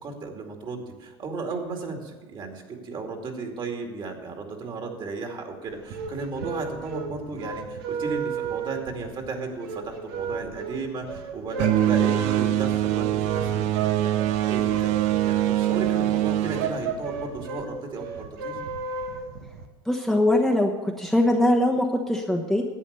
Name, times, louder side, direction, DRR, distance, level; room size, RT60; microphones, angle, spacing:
voice 1, 0.0-18.6, right 3 dB, 40° right, 3 dB, 2.4 m, -34 dB
sound 1, 5.7-19.7, right 5 dB, 80° right, 1.3 m, -34 dB
sound 2, 11.6-17.6, right 13 dB, 65° right, 0.7 m, -24 dB
voice 2, 19.8-22.6, left 1 dB, ahead, 1 dB, 1.0 m, -22 dB
11.0 x 8.3 x 6.8 m, 1.2 s
supercardioid pair, 100°, 13 cm